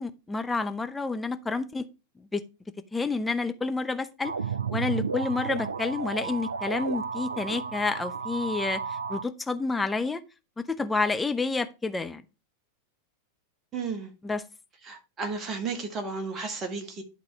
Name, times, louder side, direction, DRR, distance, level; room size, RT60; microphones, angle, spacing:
voice 1, 0.0-1.8 2.2-2.4 2.9-4.3 4.7-8.8 9.1-10.2 10.6-12.2 14.2-14.4, left 3 dB, 10° left, 0.6 m, -29 dB
sound 1, 4.2-9.2, right 5 dB, 75° right, 0.4 m, -33 dB
voice 2, 13.7-14.1 14.8-17.0, right 4 dB, 25° right, 1.6 m, -33 dB
11.0 x 3.7 x 4.4 m
figure-of-eight pair, 90°, 0 cm